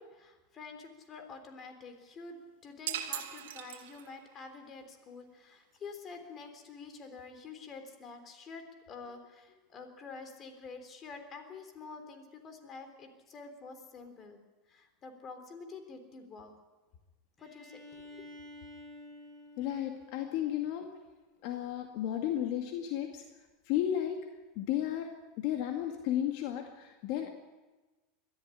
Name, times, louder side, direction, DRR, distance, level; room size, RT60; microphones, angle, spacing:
voice 1, 0.0-14.4 14.7-16.5 17.4-18.3, left 4 dB, 30° left, 7 dB, 3.7 m, -48 dB
sound 1, 2.9-4.3, right 11 dB, 85° right, 1.8 m, -39 dB
Bowed string instrument, 17.4-21.1, left 1 dB, 15° left, 6.0 m, -52 dB
voice 2, 19.6-20.9 21.4-23.2 23.7-24.3 24.6-27.3, left 11 dB, 60° left, 4 dB, 2.2 m, -33 dB
21.5 x 13.5 x 9.9 m, 1.2 s
supercardioid pair, 130°, 0 cm